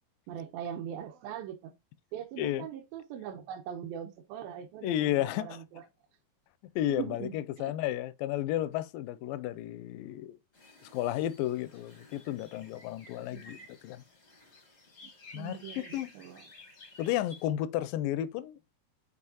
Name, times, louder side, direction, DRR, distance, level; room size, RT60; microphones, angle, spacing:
voice 1, 0.3-1.7 2.1-5.8 7.0-7.7 13.2-13.6 15.0-15.9 16.1-16.4, right 9 dB, 80° right, 2.6 m, -41 dB
voice 2, 4.8-5.6 6.8-10.4 10.8-13.6 13.8-14.0 15.3-16.1 17.0-18.6, left 13 dB, 80° left, 2.2 m, -32 dB
sound 1, 10.5-17.5, left 3 dB, 40° left, 0.9 m, -53 dB
8.5 x 4.5 x 2.8 m
omnidirectional pair, 4.2 m